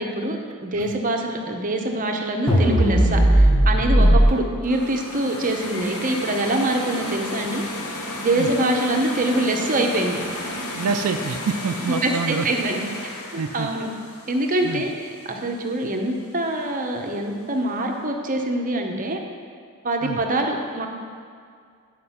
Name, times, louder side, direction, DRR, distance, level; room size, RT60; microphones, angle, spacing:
voice 1, 0.0-7.6 8.2-10.2 11.8-13.9 14.3-19.2 19.8-20.9, right 1 dB, 35° right, 2 dB, 0.8 m, -24 dB
sound 1, 2.5-4.3, right 1 dB, 20° left, 1.1 m, -16 dB
sound 2, 4.6-15.6, left 1 dB, 80° left, 1.1 m, -33 dB
voice 2, 10.7-12.5 13.4-13.7 14.6-14.8 20.0-20.2, right 5 dB, 85° right, 7 dB, 0.4 m, -26 dB
9.7 x 5.1 x 5.6 m, 2.2 s
head